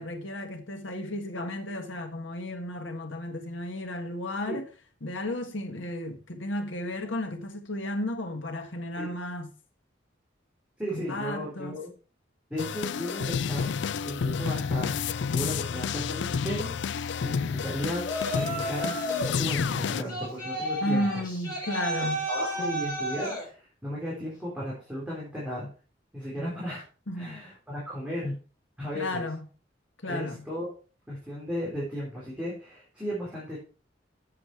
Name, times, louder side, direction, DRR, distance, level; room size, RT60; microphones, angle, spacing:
voice 1, 0.0-4.7 5.0-9.5 10.9-11.8 20.8-22.2 22.6-22.9 26.3-26.5 27.1-27.4 28.9-29.5 30.0-30.5, left 1 dB, 85° left, 1.7 m, -33 dB
voice 2, 10.8-11.9 12.5-13.7 14.0-15.0 15.3-16.7 17.2-18.0 18.3-19.0 19.3-21.1 22.0-25.7 26.1-26.8 27.1-28.4 28.8-29.2 30.0-30.7 31.1-33.6, equal, 5° right, 3.7 m, -35 dB
UF-Nervous Pursuit, 12.6-20.0, left 6 dB, 70° left, 0.4 m, -30 dB
Yell, 18.0-19.4 20.1-23.5, equal, 20° left, 5.6 m, -32 dB
8.1 x 7.5 x 4.7 m
head